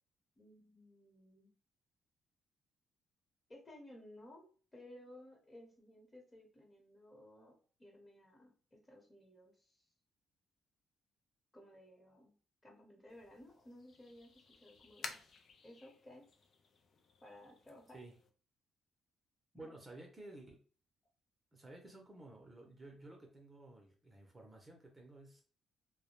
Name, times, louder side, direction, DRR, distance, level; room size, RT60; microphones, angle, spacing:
voice 1, 0.4-1.5 3.5-4.4 4.7-9.7 11.5-12.3 12.6-15.2 15.6-16.3 17.2-18.0, left 1 dB, 25° left, 0 dB, 0.9 m, -57 dB
sound 1, 13.1-18.3, left 4 dB, 55° left, 0.4 m, -54 dB
voice 2, 19.5-20.6 21.5-25.4, right 2 dB, 20° right, 1 dB, 0.6 m, -54 dB
2.2 x 2.0 x 2.9 m, 0.40 s
cardioid pair, 90°, 0 cm